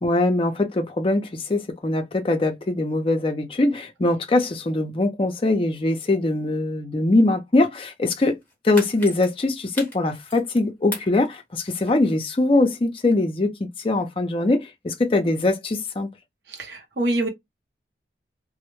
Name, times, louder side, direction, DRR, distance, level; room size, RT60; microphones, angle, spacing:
voice 1, 0.0-8.4 8.6-16.1, left 2 dB, 30° left, 0.4 m, -22 dB
sound 1, 8.4-10.6 10.9-12.2 12.5-12.6, left 2 dB, 10° left, 1.0 m, -36 dB
voice 2, 16.5-17.3, right 1 dB, 70° right, 0.8 m, -25 dB
2.1 x 2.0 x 2.9 m
head